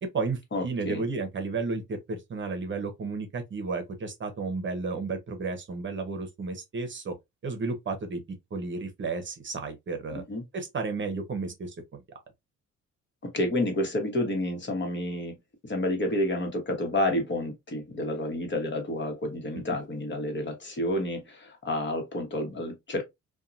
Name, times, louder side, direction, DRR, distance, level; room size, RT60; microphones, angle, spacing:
voice 1, 0.0-7.1 7.4-8.2 8.5-10.2 10.5-12.2, right 4 dB, 40° right, 0.8 m, -33 dB
voice 2, 0.5-1.0 10.1-10.4 13.2-15.4 15.7-23.0, left 1 dB, 40° left, 1.1 m, -30 dB
2.7 x 2.2 x 2.5 m
cardioid pair, 90°, 30 cm